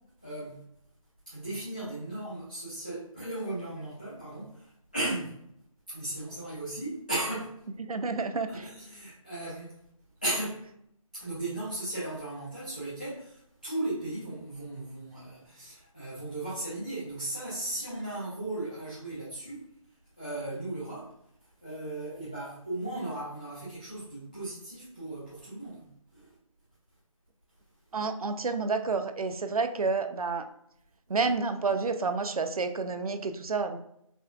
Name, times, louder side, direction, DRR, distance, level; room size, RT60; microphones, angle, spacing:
voice 1, 0.2-0.6 1.3-5.3 5.9-7.5 8.5-9.8 10.2-10.6 11.1-19.6 20.2-21.1 21.6-26.3, right 1 dB, 15° left, -10 dB, 0.4 m, -36 dB
voice 2, 7.9-8.5 27.9-30.5 31.1-33.8, right 4 dB, 85° right, 8 dB, 0.5 m, -29 dB
4.9 x 2.3 x 2.2 m, 0.74 s
figure-of-eight pair, 165°, 18 cm